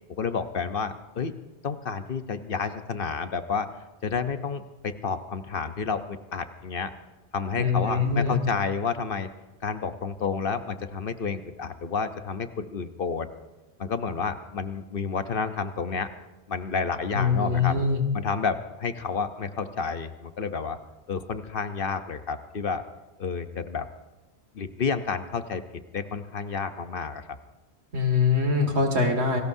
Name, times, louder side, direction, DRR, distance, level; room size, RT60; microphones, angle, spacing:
voice 1, 0.1-1.3 1.6-3.7 4.0-6.9 7.3-9.3 9.6-13.3 13.8-16.1 16.5-17.8 18.1-20.8 21.1-22.8 23.2-23.9 24.5-25.6 25.9-27.2, left 5 dB, 60° left, 9 dB, 1.0 m, -30 dB
voice 2, 7.5-8.4 17.1-18.0 27.9-29.4, left 4 dB, 85° right, 4 dB, 2.5 m, -23 dB
27.5 x 19.5 x 2.7 m, 1.1 s
omnidirectional pair, 1.1 m